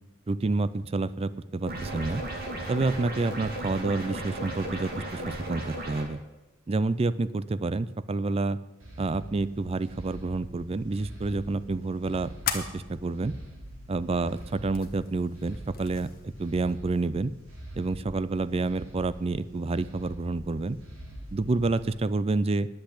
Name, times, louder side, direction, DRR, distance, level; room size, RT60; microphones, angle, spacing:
voice 1, 0.3-2.2 2.7-6.2 6.7-8.6 9.0-13.3 13.9-17.3 17.7-20.8 21.3-22.7, right 3 dB, 30° right, 16 dB, 0.4 m, -29 dB
sound 1, 1.7-6.0, right 1 dB, 50° right, 2.3 m, -35 dB
sound 2, 8.8-21.9, right 1 dB, 80° right, 3.7 m, -45 dB
sound 3, 10.9-16.8, left 8 dB, 50° left, 1.3 m, -40 dB
10.5 x 8.1 x 8.4 m, 1.1 s
head